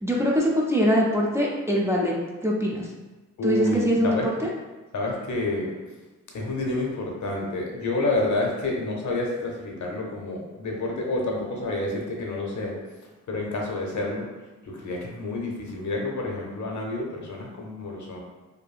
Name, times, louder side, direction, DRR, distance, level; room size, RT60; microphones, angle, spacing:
voice 1, 0.0-2.1 2.4-2.9 3.4-4.2, equal, 10° right, -4 dB, 0.4 m, -22 dB
voice 2, 3.4-4.3 4.9-5.7 6.3-12.8 13.3-14.3 14.6-18.2, left 2 dB, 75° left, -1 dB, 0.7 m, -29 dB
2.7 x 2.5 x 2.3 m, 1.2 s
cardioid pair, 95°, 29 cm